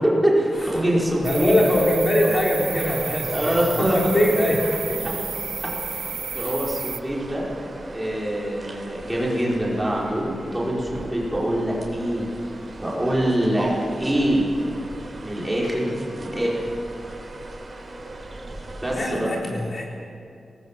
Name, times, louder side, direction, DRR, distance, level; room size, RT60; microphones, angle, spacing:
voice 1, 0.0-1.5 3.3-4.1 5.6-6.0 6.3-7.5 7.9-12.3 12.8-13.7 14.0-14.5 15.2-16.6 18.8-19.3, right 1 dB, 5° right, -5 dB, 5.0 m, -24 dB
sound 1, 0.5-18.9, right 2 dB, 30° right, 3.9 m, -38 dB
voice 2, 1.2-5.2 6.3-6.5 18.9-19.8, left 1 dB, 40° left, -2 dB, 3.6 m, -23 dB
sound 2, 1.2-7.0, right 6 dB, 60° right, 0.5 m, -32 dB
27.0 x 19.5 x 7.5 m, 2.5 s
wide cardioid pair, 175°, 0 cm